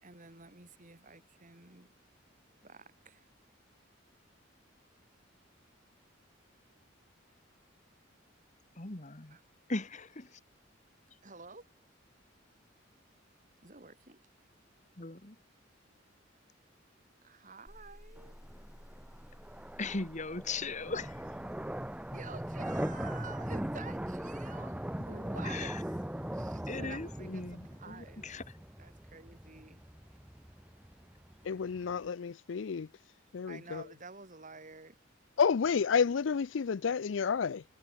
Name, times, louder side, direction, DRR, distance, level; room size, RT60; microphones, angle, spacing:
voice 1, 0.0-1.9 2.6-3.3 9.3-9.4 11.2-11.7 13.6-14.2 17.2-18.4 22.1-25.7 26.3-28.3 28.8-29.8 33.5-35.0, right 4 dB, 40° right, 3.3 m, -50 dB
voice 2, 8.8-9.4 9.7-10.4 15.0-15.4 19.8-21.4 25.4-25.8 26.7-28.6, left 3 dB, 40° left, 1.8 m, -39 dB
sound 1, 17.7-25.5, equal, 15° left, 1.4 m, -56 dB
sound 2, 18.2-32.1, right 1 dB, 5° right, 0.6 m, -40 dB
voice 3, 31.4-32.9 33.3-33.8 35.4-37.6, left 6 dB, 75° left, 0.5 m, -30 dB
head